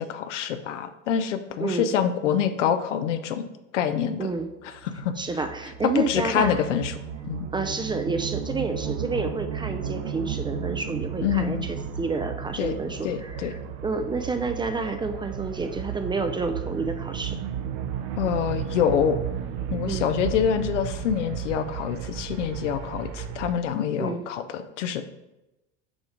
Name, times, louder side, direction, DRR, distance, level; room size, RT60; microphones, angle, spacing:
voice 1, 0.0-3.5 3.7-4.3 4.8-5.1 5.9-6.9 7.3-7.5 11.2-11.7 12.6-12.8 13.0-13.5 18.2-19.2 19.7-25.0, left 8 dB, 85° left, 10 dB, 0.6 m, -26 dB
voice 2, 1.6-1.9 4.2-4.5 5.2-6.6 7.5-17.4 19.9-20.1 24.0-24.3, right 3 dB, 15° right, 7 dB, 0.4 m, -29 dB
sound 1, 4.3-23.5, right 8 dB, 65° right, 0.7 m, -34 dB
6.4 x 3.0 x 5.0 m, 0.95 s
hypercardioid pair, 85°, 35 cm